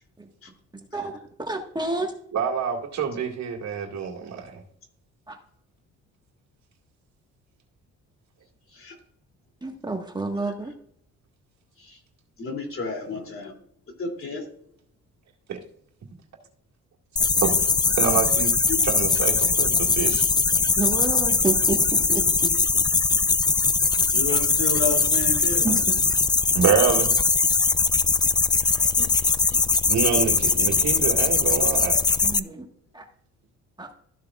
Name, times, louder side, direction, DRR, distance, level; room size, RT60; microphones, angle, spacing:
voice 1, 1.4-2.1 5.3-5.4 9.6-10.7 20.8-21.8 22.1-22.2 25.6-26.0 32.2-32.6 32.9-33.0 33.8-33.9, right 3 dB, 15° right, 2 dB, 1.4 m, -29 dB
voice 2, 2.3-4.6 15.5-15.6 17.4-17.7 18.0-18.6 18.8-20.3 26.5-27.1 29.9-32.0, right 6 dB, 65° right, 0 dB, 2.1 m, -26 dB
voice 3, 12.4-13.5 14.0-14.4 18.7-18.8 24.1-25.7 28.6-29.6, left 4 dB, 45° left, 3 dB, 2.7 m, -32 dB
sound 1, 17.2-32.4, left 4 dB, 15° left, 0.3 m, -21 dB
14.0 x 6.6 x 2.4 m, 0.67 s
cardioid pair, 90°, 30 cm